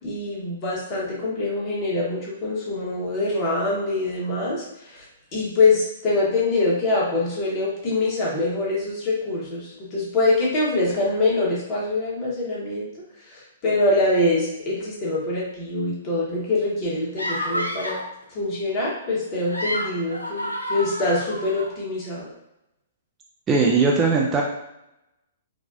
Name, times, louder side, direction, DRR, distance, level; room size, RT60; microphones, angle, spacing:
voice 1, 0.0-5.0 5.3-12.9 13.2-18.0 18.3-22.3, left 2 dB, 35° left, -5 dB, 1.3 m, -24 dB
sound 1, 17.2-18.1 19.3-21.7, equal, 85° left, 0.5 m, -30 dB
voice 2, 23.5-24.4, right 4 dB, 20° right, -2 dB, 0.5 m, -19 dB
4.1 x 2.2 x 2.6 m, 0.87 s
figure-of-eight pair, 115°, 0 cm